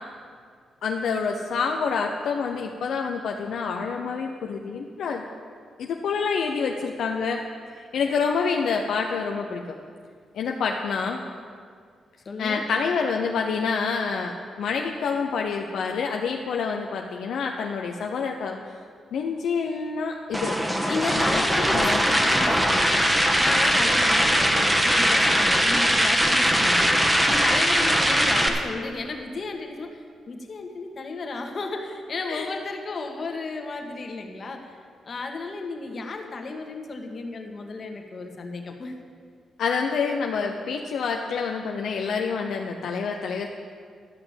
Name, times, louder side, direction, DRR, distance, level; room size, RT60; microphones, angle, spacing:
voice 1, 0.8-5.2 5.8-7.4 7.9-9.6 10.3-11.2 12.4-18.6 19.1-20.6 21.1-21.4 21.7-22.0 32.3-32.5 39.6-43.5, left 5 dB, 80° left, 2 dB, 0.7 m, -27 dB
voice 2, 12.2-12.6 20.9-34.8 35.0-38.9, left 3 dB, 50° left, 3 dB, 1.7 m, -33 dB
sound 1, 20.3-28.5, equal, 10° right, 1.5 m, -21 dB
12.0 x 5.9 x 8.9 m, 2.1 s
cardioid pair, 60°, 0 cm